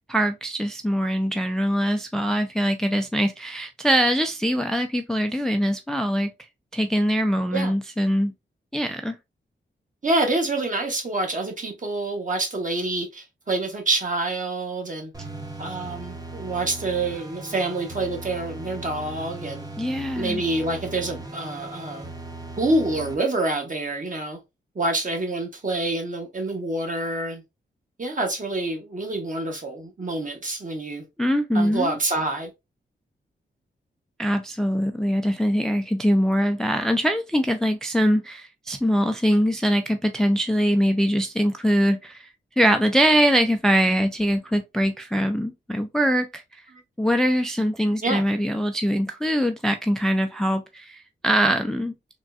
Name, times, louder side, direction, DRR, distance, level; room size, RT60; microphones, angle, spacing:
voice 1, 0.1-6.3 6.7-8.3 8.7-9.2 19.8-20.4 31.2-32.0 34.2-42.3 42.6-46.6 47.0-51.9, equal, 5° left, 0.4 m, -23 dB
voice 2, 10.0-15.1 15.6-19.7 20.1-22.1 22.6-24.4 24.7-27.4 28.0-31.0 31.5-32.5 46.7-46.8 48.0-48.2, right 2 dB, 40° right, 1.2 m, -27 dB
sound 1, 15.1-23.2, right 2 dB, 20° right, 0.8 m, -38 dB
3.5 x 2.2 x 2.4 m
cardioid pair, 50°, 20 cm